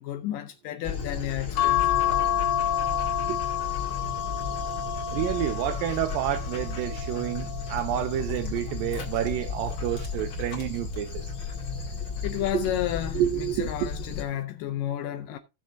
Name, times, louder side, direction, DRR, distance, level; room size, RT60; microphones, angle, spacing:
voice 1, 0.0-1.9 12.2-15.4, left 12 dB, 90° left, 1.9 m, -32 dB
Dog, 0.8-14.2, left 5 dB, 45° left, 1.9 m, -34 dB
sound 1, 1.6-8.2 8.8-10.2 11.5-11.9 12.2-12.3, left 10 dB, 65° left, 2.2 m, -30 dB
voice 2, 5.1-11.3 12.5-12.7 13.1-13.9, right 12 dB, 80° right, 2.1 m, -29 dB
17.0 x 6.4 x 2.7 m
omnidirectional pair, 4.7 m